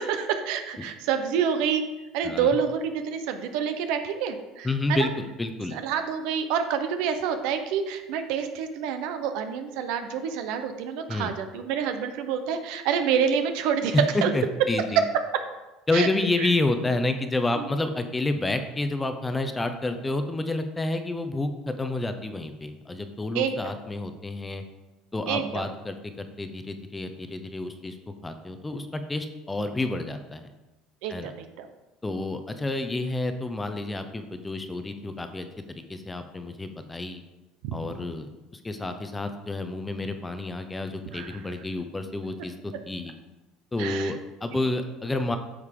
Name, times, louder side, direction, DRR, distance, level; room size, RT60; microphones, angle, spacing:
voice 1, 0.0-1.9 2.1-5.1 5.7-14.0 14.2-14.3 15.9-16.1 16.4-16.5 17.6-17.7 23.3-23.6 25.3-25.6 31.0-31.7 37.6-38.1 41.1-41.4 43.8-44.1 44.5-44.7, right 7 dB, 75° right, 8 dB, 0.9 m, -28 dB
voice 2, 2.2-2.6 4.6-5.8 11.1-11.3 14.1-15.0 15.9-24.6 25.1-28.0 28.2-30.5 31.1-31.3 32.0-37.2 37.7-42.5 42.9-43.1 43.7-45.4, left 2 dB, 10° left, 7 dB, 0.7 m, -29 dB
9.6 x 6.5 x 3.7 m, 1.0 s
cardioid pair, 135°, 0 cm